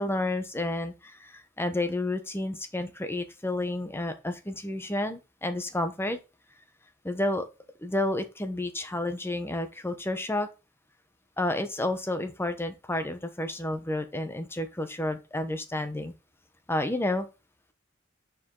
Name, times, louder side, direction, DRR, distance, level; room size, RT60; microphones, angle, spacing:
voice 1, 0.0-6.2 7.0-7.5 7.8-10.5 11.4-16.1 16.7-17.3, left 1 dB, 10° left, 0.9 m, -30 dB
9.3 x 4.8 x 3.8 m
head